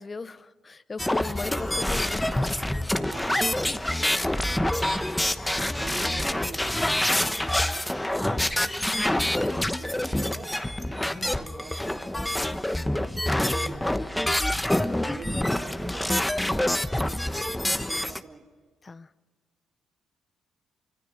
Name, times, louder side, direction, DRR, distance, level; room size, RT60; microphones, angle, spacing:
voice 1, 0.0-2.3 2.7-2.9 4.1-4.4 11.1-11.3 18.8-19.1, left 4 dB, 30° left, 13 dB, 1.0 m, -37 dB
sound 1, 1.0-18.2, left 1 dB, 10° left, 1.1 m, -26 dB
voice 2, 1.5-2.0 3.0-5.1 5.5-6.6 7.1-8.4 9.8-10.6 10.9-12.8 13.3-14.3 15.0-18.4, right 5 dB, 50° right, -4 dB, 5.1 m, -45 dB
28.0 x 25.5 x 5.3 m, 1.4 s
cardioid pair, 90°, 0 cm